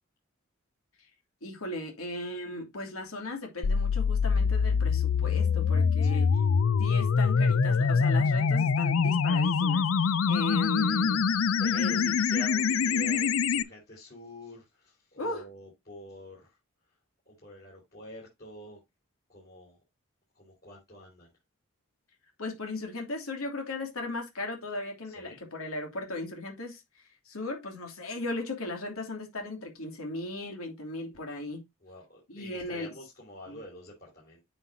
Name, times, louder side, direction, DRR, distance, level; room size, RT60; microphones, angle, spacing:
voice 1, 1.4-6.3 6.8-9.9 10.3-11.2 11.8-12.1 15.2-15.4 22.4-26.8 27.3-31.6 32.3-32.9 33.5-33.6, left 2 dB, 90° left, 2.8 m, -37 dB
sound 1, 3.6-13.6, left 5 dB, 70° left, 0.4 m, -25 dB
voice 2, 11.3-16.5 17.3-18.8 19.3-19.8 20.3-21.3 25.1-25.4 31.8-34.4, left 1 dB, 45° left, 4.3 m, -47 dB
9.8 x 5.7 x 2.8 m
head